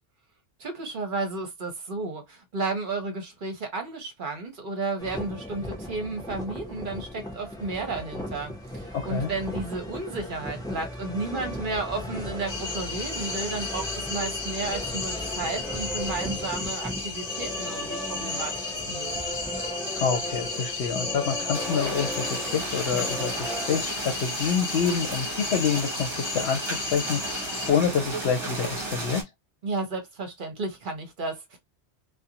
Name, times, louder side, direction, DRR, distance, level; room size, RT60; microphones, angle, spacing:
voice 1, 0.6-18.5 18.8-19.4 29.6-31.6, right 3 dB, 55° right, 0.8 m, -33 dB
sound 1, 5.0-23.8, left 1 dB, 5° left, 0.6 m, -36 dB
sound 2, 12.5-27.7, left 3 dB, 40° left, 1.2 m, -34 dB
voice 2, 19.9-29.2, left 7 dB, 75° left, 0.8 m, -27 dB
sound 3, 21.5-29.2, right 2 dB, 25° right, 1.0 m, -34 dB
2.4 x 2.2 x 2.7 m
omnidirectional pair, 1.2 m